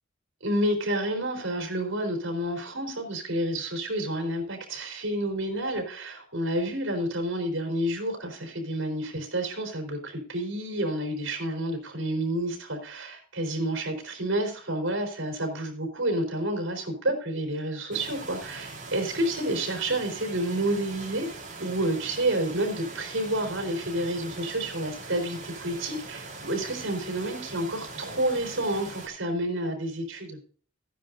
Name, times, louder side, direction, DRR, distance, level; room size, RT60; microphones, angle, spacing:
voice 1, 0.4-21.3 21.6-30.4, right 1 dB, 75° right, 3 dB, 4.1 m, -29 dB
sound 1, 17.9-29.1, right 3 dB, 40° right, 3.7 m, -41 dB
15.5 x 10.0 x 2.7 m, 0.41 s
head